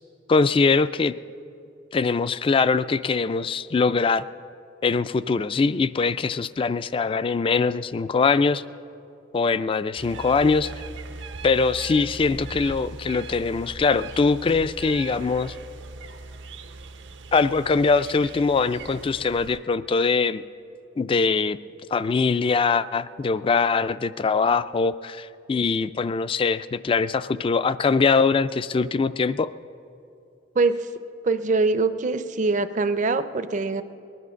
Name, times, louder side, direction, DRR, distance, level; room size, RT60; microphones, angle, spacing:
voice 1, 0.3-1.1 1.9-4.2 4.8-8.6 9.3-10.7 11.4-15.5 17.3-20.4 21.0-21.6 21.9-29.5, left 4 dB, 30° left, 15 dB, 0.3 m, -22 dB
sound 1, 10.0-19.6, right 3 dB, 75° right, 0.7 m, -40 dB
voice 2, 30.6-30.9 31.2-33.8, right 3 dB, 40° right, 12 dB, 0.5 m, -23 dB
20.0 x 11.0 x 6.3 m, 2.6 s
head